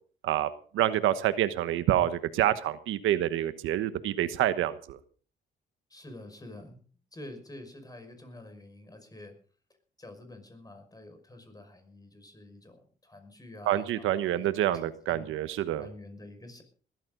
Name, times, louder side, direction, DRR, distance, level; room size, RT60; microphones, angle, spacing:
voice 1, 0.2-5.0 13.7-15.9, right 12 dB, 90° right, 12 dB, 1.2 m, -27 dB
voice 2, 5.9-6.8 7.1-9.3 10.0-15.3 15.8-16.6, left 1 dB, 20° left, 7 dB, 5.7 m, -48 dB
20.5 x 14.0 x 3.9 m, 0.42 s
cardioid pair, 90°, 20 cm